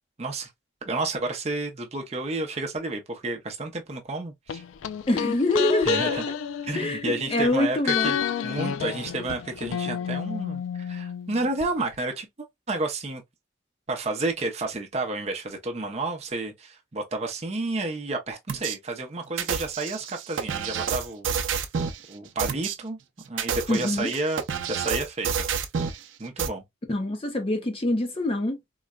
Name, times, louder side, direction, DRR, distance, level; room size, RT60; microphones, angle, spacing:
voice 1, 0.2-0.5 0.8-4.6 5.8-6.2 6.6-8.2 8.4-12.3 12.7-13.2 13.9-21.6 22.1-23.0 23.3-24.4 24.7-25.4 25.8-25.9 26.2-26.6, right 2 dB, 35° right, 0.6 m, -31 dB
sound 1, 4.5-7.5 7.9-11.7 11.9-12.0, left 8 dB, 90° left, 0.3 m, -30 dB
voice 2, 5.1-6.2 6.8-8.2 23.7-24.1 26.9-28.6, left 1 dB, 30° left, 0.6 m, -25 dB
sound 2, 18.5-18.8 19.4-22.0 22.4-22.7 23.3-26.0 26.4-26.5, right 7 dB, 85° right, 0.5 m, -29 dB
3.8 x 2.1 x 2.2 m
head